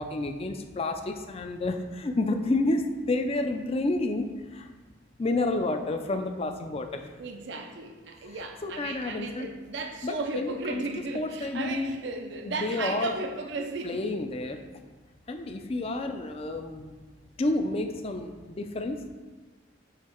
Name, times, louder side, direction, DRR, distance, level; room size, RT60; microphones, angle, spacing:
voice 1, 0.0-4.7 5.2-7.0 8.6-9.5 10.0-10.8 11.1-12.0 12.4-13.1 13.8-14.6 15.3-16.9 17.4-19.1, left 2 dB, 30° left, 6 dB, 0.4 m, -30 dB
voice 2, 7.2-14.0, right 3 dB, 65° right, 4 dB, 0.5 m, -35 dB
6.5 x 3.5 x 4.4 m, 1.3 s
head